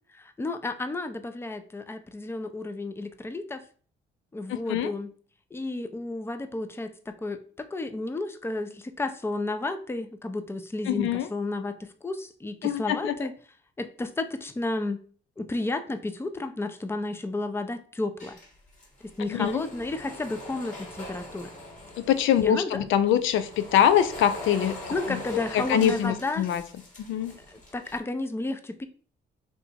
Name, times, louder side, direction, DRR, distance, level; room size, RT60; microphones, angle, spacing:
voice 1, 0.1-3.6 4.3-5.1 5.5-13.3 13.8-15.0 15.4-18.4 19.0-21.5 22.4-22.9 24.9-26.5 27.3-28.9, left 2 dB, 10° left, 9 dB, 0.5 m, -32 dB
voice 2, 4.5-4.9 10.9-11.3 12.6-13.2 19.3-19.6 22.1-24.8 25.7-26.6 27.0-27.3, left 10 dB, 80° left, 11 dB, 0.4 m, -23 dB
sound 1, 18.2-22.5 23.0-28.0, left 1 dB, 35° left, 1.9 m, -42 dB
3.4 x 2.9 x 4.1 m, 0.42 s
cardioid pair, 90°, 20 cm